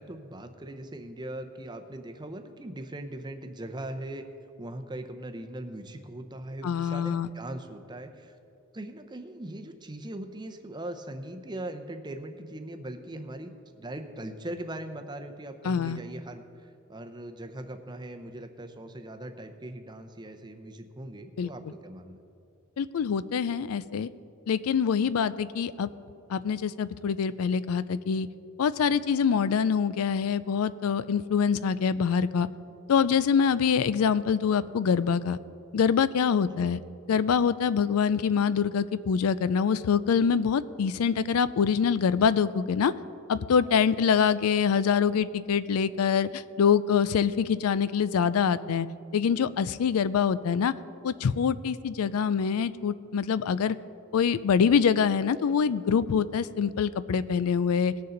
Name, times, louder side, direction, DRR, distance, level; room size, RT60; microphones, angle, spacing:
voice 1, 0.0-4.2 4.6-8.4 8.7-22.2 36.5-36.6, right 1 dB, 20° right, 7 dB, 0.7 m, -40 dB
voice 2, 6.6-7.3 15.6-16.0 21.4-21.5 22.8-24.1 24.5-25.9 26.3-28.3 28.6-32.5 32.9-35.4 35.7-36.8 37.1-42.9 43.3-48.9 49.1-50.7 51.0-53.8 54.1-57.9, left 6 dB, 80° left, 15 dB, 0.4 m, -25 dB
19.5 x 6.7 x 3.9 m, 2.5 s
head